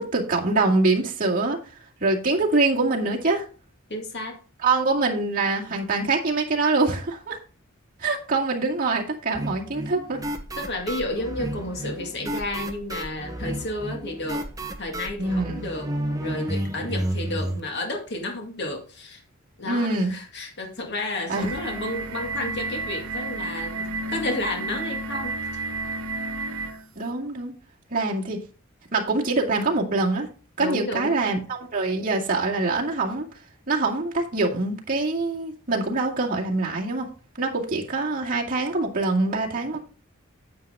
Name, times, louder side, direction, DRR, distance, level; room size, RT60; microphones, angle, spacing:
voice 1, 0.0-1.6 2.0-3.5 4.6-7.4 8.0-10.2 15.2-15.7 19.7-20.1 21.3-21.5 27.0-27.5 27.9-28.4 28.9-30.3 30.6-33.3 33.7-37.1 37.4-39.8, right 3 dB, 40° right, -2 dB, 2.2 m, -24 dB
voice 2, 3.9-4.4 10.6-14.5 14.8-15.9 16.2-19.2 19.6-25.4 30.6-31.2, left 2 dB, 55° left, 2 dB, 2.1 m, -32 dB
sound 1, 9.3-17.6, right 1 dB, 15° right, 0.9 m, -31 dB
sound 2, 21.3-26.9, right 3 dB, 70° right, 0.9 m, -31 dB
9.4 x 7.8 x 3.6 m, 0.37 s
head